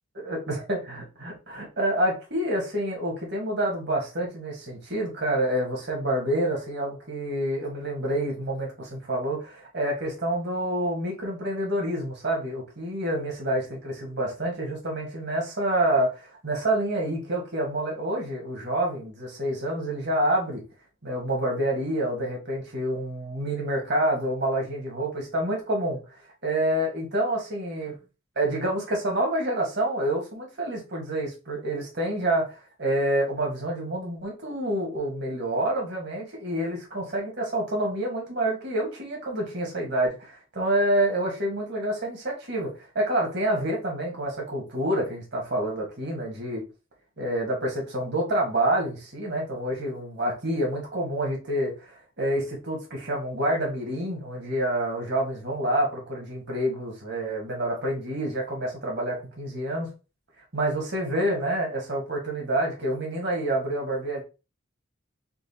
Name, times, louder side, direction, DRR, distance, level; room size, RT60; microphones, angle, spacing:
voice 1, 0.2-20.6 21.0-27.9 28.4-46.6 47.2-59.9 60.5-64.2, right 1 dB, 55° right, -1 dB, 1.9 m, -28 dB
4.6 x 2.6 x 4.3 m, 0.30 s
head